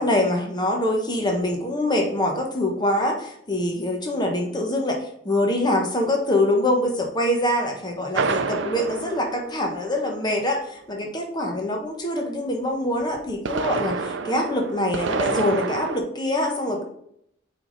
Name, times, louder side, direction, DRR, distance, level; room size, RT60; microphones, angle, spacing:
voice 1, 0.0-5.0 5.2-16.8, left 1 dB, 25° left, 2 dB, 1.1 m, -24 dB
sound 1, 8.1-10.2 13.2-16.0, right 4 dB, 70° right, 0.5 m, -28 dB
8.1 x 3.6 x 4.0 m, 0.72 s
head